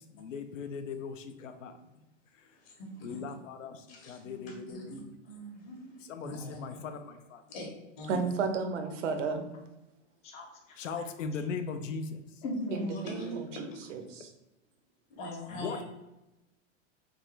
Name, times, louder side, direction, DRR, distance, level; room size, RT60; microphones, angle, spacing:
voice 1, 0.0-1.9 2.3-2.6 3.0-5.0 6.0-7.4 10.8-12.4 15.5-15.8, left 5 dB, 90° left, 7 dB, 0.6 m, -39 dB
voice 2, 2.5-3.2 3.9-6.8 7.5-7.7 8.0-8.3 13.1-13.2 15.1-15.8, left 1 dB, 50° left, 0 dB, 1.2 m, -44 dB
voice 3, 8.1-9.4 13.0-14.3, right 5 dB, 70° right, 6 dB, 0.7 m, -33 dB
voice 4, 10.2-10.8 11.3-11.4 12.4-13.6 15.2-15.6, left 1 dB, 20° left, 2 dB, 0.4 m, -39 dB
3.6 x 2.3 x 3.0 m, 0.98 s
hypercardioid pair, 125°, 37 cm